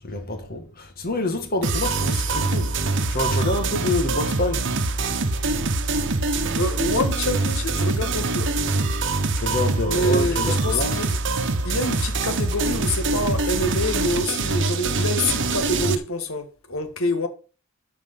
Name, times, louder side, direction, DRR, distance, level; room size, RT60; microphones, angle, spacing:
voice 1, 0.0-4.7 9.4-11.0, left 2 dB, 45° left, 2.1 m, -27 dB
sound 1, 1.6-15.9, right 3 dB, 60° right, 1.1 m, -24 dB
voice 2, 6.5-8.5 9.8-11.1 11.6-17.3, left 1 dB, 75° left, 1.8 m, -26 dB
12.5 x 4.7 x 5.7 m
head